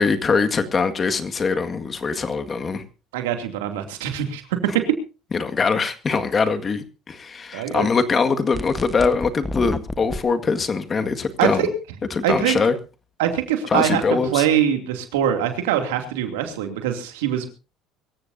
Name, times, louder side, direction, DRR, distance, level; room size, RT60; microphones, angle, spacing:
voice 1, 0.0-2.8 5.3-11.7 12.2-12.7 13.7-14.4, left 4 dB, 35° left, 1.9 m, -22 dB
voice 2, 3.1-4.4 4.7-4.9 7.5-7.9 11.4-11.7 12.2-12.6 13.2-17.5, right 10 dB, 90° right, 2.7 m, -23 dB
sound 1, 8.5-10.2, left 2 dB, 15° left, 1.2 m, -30 dB
24.0 x 14.5 x 2.8 m
supercardioid pair, 85°, 0 cm